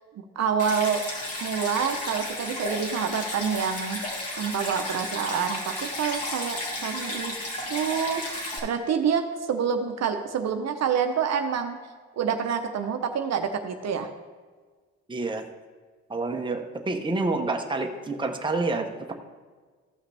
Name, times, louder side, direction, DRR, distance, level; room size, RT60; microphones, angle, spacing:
voice 1, 0.4-1.0 1.4-4.0 4.4-7.3 7.7-11.8 12.1-14.1, right 7 dB, 60° right, 6 dB, 0.8 m, -27 dB
Stream, 0.6-8.6, left 1 dB, 55° left, 2.5 m, -33 dB
voice 2, 15.1-15.5 16.1-19.1, right 3 dB, 15° right, 3 dB, 0.9 m, -28 dB
14.5 x 5.7 x 3.4 m, 1.5 s
cardioid pair, 90°, 30 cm